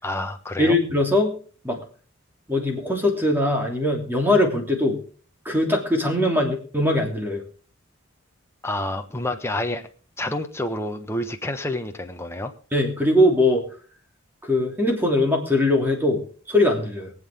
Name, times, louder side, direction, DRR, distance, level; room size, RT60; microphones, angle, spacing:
voice 1, 0.0-0.8 8.6-9.9 10.2-12.5, left 1 dB, 10° left, 5 dB, 1.2 m, -28 dB
voice 2, 0.6-1.4 1.6-1.8 2.5-5.0 5.4-7.4 12.7-13.6 14.4-17.1, left 1 dB, 10° right, 1 dB, 3.1 m, -21 dB
23.5 x 7.9 x 3.7 m, 0.41 s
head